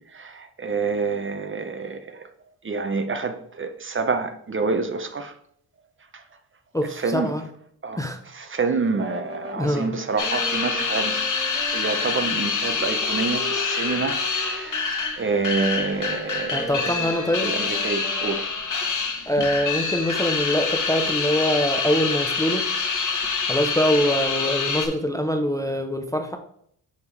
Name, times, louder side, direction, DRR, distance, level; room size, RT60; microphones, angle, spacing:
voice 1, 0.1-2.3 2.6-5.3 7.0-7.3 7.8-8.0 8.3-11.2 11.7-16.7 17.4-18.5, right 4 dB, 30° right, 0.7 m, -27 dB
voice 2, 6.7-7.4 8.0-8.2 9.6-9.9 16.5-17.5 19.3-22.7 23.5-26.4, equal, 10° left, 0.6 m, -24 dB
Wind instrument woodwind instrument, 8.9-18.5, equal, 15° right, 1.9 m, -38 dB
sound 1, 10.2-24.9, left 5 dB, 45° left, 1.3 m, -26 dB
5.4 x 4.9 x 4.7 m
cardioid pair, 80°, 43 cm